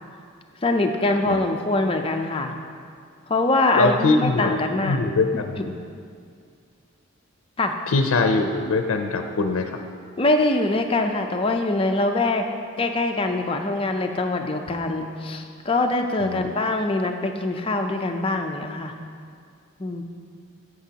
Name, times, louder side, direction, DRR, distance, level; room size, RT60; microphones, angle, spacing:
voice 1, 0.6-2.6 3.3-5.0 5.6-5.7 7.6-7.7 10.2-12.5 12.8-18.9 19.8-20.0, left 2 dB, 25° left, 4 dB, 0.5 m, -23 dB
voice 2, 3.8-5.6 7.9-9.7 16.2-16.5, left 3 dB, 85° left, 5 dB, 0.5 m, -22 dB
15.0 x 6.0 x 2.8 m, 2.2 s
head